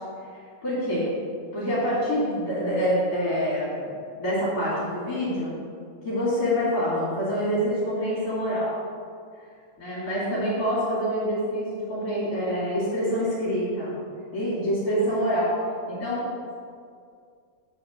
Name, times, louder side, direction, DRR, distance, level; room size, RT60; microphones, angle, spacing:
voice 1, 0.6-1.1 1.5-3.9 4.2-5.6 6.0-8.7 9.8-13.9 14.3-15.6 15.9-16.3, equal, 35° left, -9 dB, 2.8 m, -26 dB
8.0 x 4.9 x 6.2 m, 2.2 s
omnidirectional pair, 3.3 m